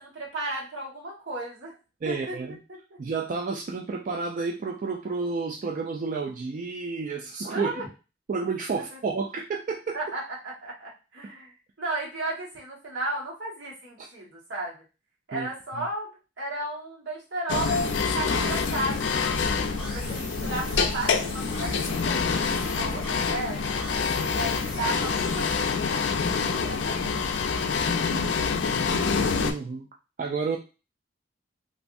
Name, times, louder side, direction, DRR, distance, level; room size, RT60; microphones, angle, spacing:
voice 1, 0.0-1.8 2.0-2.4 2.7-3.0 7.5-7.9 8.7-9.0 9.9-14.7 15.3-16.1 16.4-17.8 18.1-19.5 19.9-23.8 24.3-26.2 26.4-27.9, right 2 dB, 80° right, -4 dB, 1.4 m, -35 dB
voice 2, 2.0-2.6 3.0-7.7 8.3-10.0 15.3-15.5 29.4-29.9 30.2-30.6, right 4 dB, 45° right, 0 dB, 0.3 m, -30 dB
sound 1, 17.5-29.5, left 5 dB, 85° left, 0.4 m, -26 dB
sound 2, 17.5-25.5, equal, 5° right, 1.0 m, -40 dB
3.3 x 2.5 x 2.5 m, 0.31 s
head